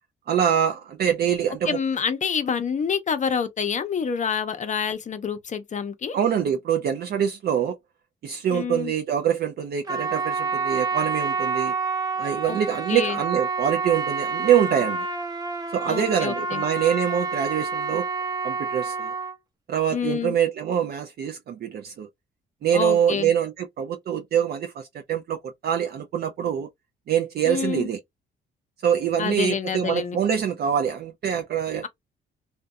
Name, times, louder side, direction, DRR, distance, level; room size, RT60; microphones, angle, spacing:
voice 1, 0.3-1.8 6.1-7.8 8.2-11.7 12.2-15.1 15.7-18.1 18.4-19.1 19.7-22.1 22.6-26.7 27.1-28.0 28.8-31.8, right 8 dB, 55° right, 0.4 m, -24 dB
voice 2, 1.7-6.2 8.5-8.9 12.5-12.6 12.9-13.2 15.9-16.6 19.9-20.3 22.7-23.3 27.5-27.9 29.2-30.2, left 6 dB, 40° left, 0.5 m, -27 dB
Trumpet, 9.8-19.3, right 4 dB, 20° right, 0.7 m, -28 dB
2.6 x 2.1 x 2.2 m
cardioid pair, 90°, 20 cm